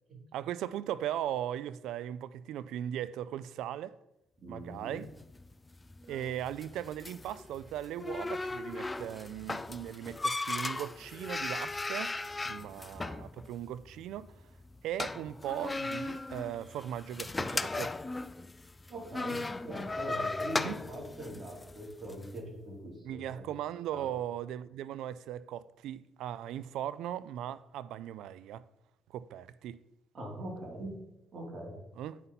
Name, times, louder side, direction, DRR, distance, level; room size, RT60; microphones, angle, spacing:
voice 1, 0.1-4.0 4.5-5.1 6.1-12.2 12.4-14.3 14.8-18.0 20.6-20.8 23.0-28.6 29.1-29.8 32.0-32.2, right 11 dB, 85° right, 0.3 m, -38 dB
voice 2, 4.4-5.0 12.5-12.8 18.9-23.4 23.9-24.1 30.1-31.0 31.3-31.8, right 1 dB, 45° right, 3.1 m, -42 dB
sound 1, 5.0-22.3, left 2 dB, 20° left, 0.3 m, -38 dB
9.2 x 5.6 x 4.1 m
cardioid pair, 90°, 0 cm